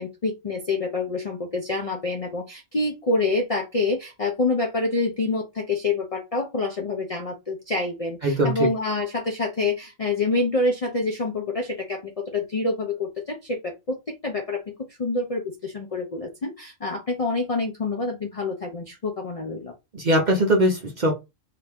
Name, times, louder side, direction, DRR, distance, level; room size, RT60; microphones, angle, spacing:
voice 1, 0.0-14.7 15.0-19.7, left 3 dB, 55° left, 0.4 m, -27 dB
voice 2, 8.2-8.7 19.9-21.1, right 1 dB, 45° right, 0.6 m, -21 dB
2.9 x 2.5 x 3.4 m
omnidirectional pair, 1.4 m